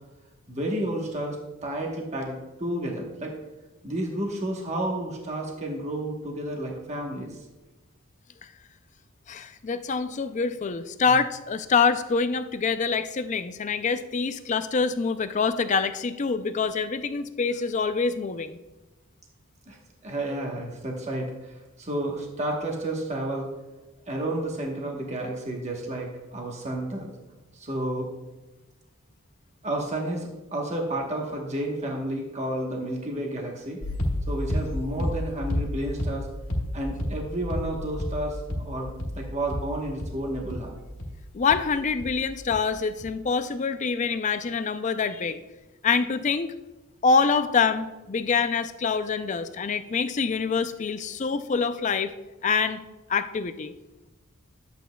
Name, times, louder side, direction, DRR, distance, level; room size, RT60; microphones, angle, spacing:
voice 1, 0.5-3.4 3.8-7.4 19.7-19.8 20.0-23.5 24.1-27.1 27.5-28.1 29.6-33.8 34.3-36.3 36.7-38.9 39.1-40.7, right 1 dB, 30° right, 0 dB, 1.1 m, -31 dB
voice 2, 9.3-18.6 41.3-45.4 45.8-46.5 47.0-52.1 52.4-52.8 53.1-53.7, left 5 dB, 35° left, 11 dB, 0.4 m, -25 dB
sound 1, 33.8-42.2 42.5-43.0, left 1 dB, 80° left, 1.7 m, -31 dB
11.5 x 8.1 x 2.2 m, 1.1 s
head